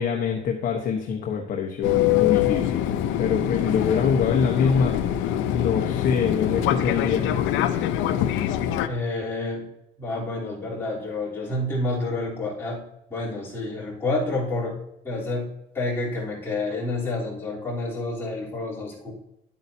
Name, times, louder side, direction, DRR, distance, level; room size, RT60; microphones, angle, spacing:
voice 1, 0.0-7.3, left 6 dB, 45° left, 1 dB, 1.0 m, -25 dB
Fixed-wing aircraft airplane, 1.8-8.9, left 11 dB, 80° left, 0.7 m, -24 dB
voice 2, 8.9-9.6 10.0-12.8 13.1-14.8 15.0-15.5 15.7-19.1, left 2 dB, 10° left, -8 dB, 3.5 m, -29 dB
11.0 x 8.7 x 2.8 m, 0.84 s
cardioid pair, 175°, 19 cm